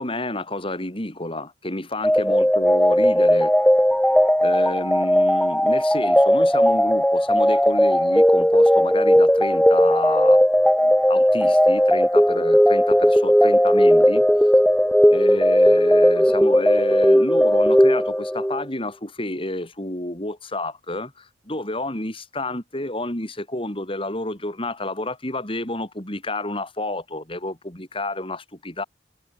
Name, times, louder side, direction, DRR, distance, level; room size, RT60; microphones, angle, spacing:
voice 1, 0.0-3.5 4.4-10.4 10.8-14.3 15.1-28.8, left 1 dB, 30° left, 5.8 m, -30 dB
sound 1, 2.0-18.6, equal, 5° left, 1.8 m, -17 dB
head